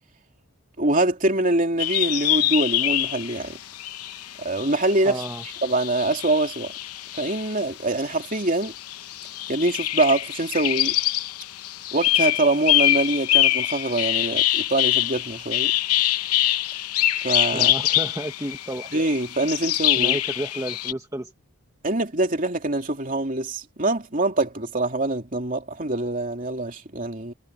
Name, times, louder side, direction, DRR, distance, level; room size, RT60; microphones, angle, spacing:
voice 1, 0.8-3.6 4.4-5.2 5.6-6.7 7.2-8.7 9.5-10.9 11.9-15.7 17.2-17.7 18.9-20.2 21.8-27.3, right 2 dB, 35° right, 3.1 m, -24 dB
sound 1, 1.8-7.6 8.0-20.9, left 14 dB, 85° left, 0.8 m, -24 dB
voice 2, 5.0-5.4 17.5-18.9 20.0-21.3, right 1 dB, 15° right, 1.2 m, -32 dB
head